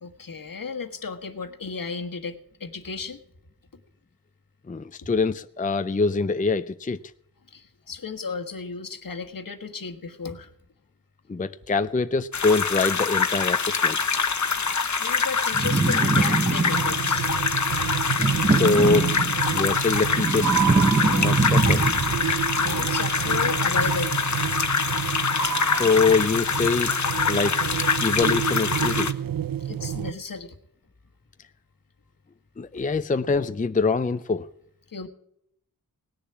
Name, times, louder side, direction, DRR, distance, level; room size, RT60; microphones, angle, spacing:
voice 1, 0.0-3.2 7.5-10.5 14.5-17.3 22.6-24.1 25.4-25.5 29.6-30.6 34.9-35.1, left 5 dB, 70° left, 1.5 m, -34 dB
voice 2, 4.7-7.0 11.3-14.1 18.5-19.1 19.5-20.5 21.1-21.9 25.8-27.6 28.0-29.1 32.6-34.5, left 4 dB, 25° left, 0.5 m, -24 dB
sound 1, 12.3-29.1, left 5 dB, 55° left, 1.0 m, -25 dB
sound 2, 15.5-17.1 18.1-19.6 19.9-22.3, right 3 dB, 25° right, 0.9 m, -23 dB
sound 3, 16.7-30.1, right 10 dB, 70° right, 0.6 m, -29 dB
18.0 x 7.0 x 9.6 m
wide cardioid pair, 85°, 35 cm